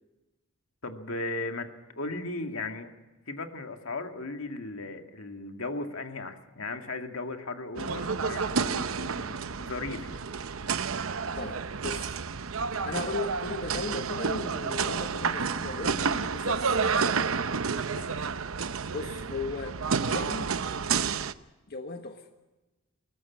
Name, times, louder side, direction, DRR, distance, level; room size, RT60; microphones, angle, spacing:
voice 1, 0.8-2.9 3.3-10.2 17.9-18.3, left 2 dB, 80° left, 5 dB, 2.1 m, -37 dB
sound 1, 7.8-21.3, right 5 dB, 75° right, 0.8 m, -30 dB
voice 2, 11.3-12.2 12.8-16.7 17.0-17.3 18.9-20.6 21.7-22.3, left 3 dB, 50° left, 5 dB, 1.4 m, -37 dB
22.0 x 19.5 x 7.3 m, 1.1 s
head